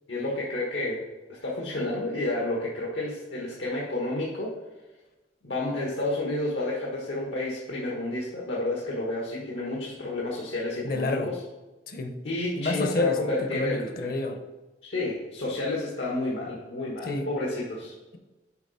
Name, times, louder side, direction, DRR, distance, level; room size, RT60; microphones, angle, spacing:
voice 1, 0.1-1.0 1.3-4.6 5.4-11.4 12.2-14.1 14.8-17.9, left 2 dB, 90° left, -4 dB, 1.3 m, -30 dB
voice 2, 10.8-11.3 11.9-12.2 12.6-14.4 17.0-17.3, left 2 dB, 55° left, 6 dB, 0.7 m, -29 dB
7.0 x 4.7 x 4.2 m, 1.1 s
head